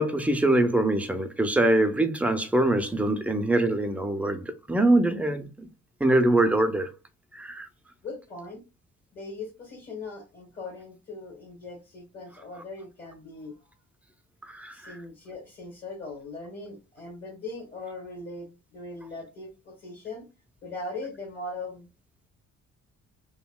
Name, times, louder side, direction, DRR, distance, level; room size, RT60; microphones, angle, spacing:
voice 1, 0.0-5.7 6.0-6.9 7.3-7.7 14.5-15.0, right 1 dB, 5° right, 0.4 m, -24 dB
voice 2, 8.0-8.6 9.1-13.7 14.7-20.3 20.6-21.9, left 2 dB, 40° left, 1.2 m, -40 dB
2.8 x 2.7 x 2.2 m
cardioid pair, 90°, 30 cm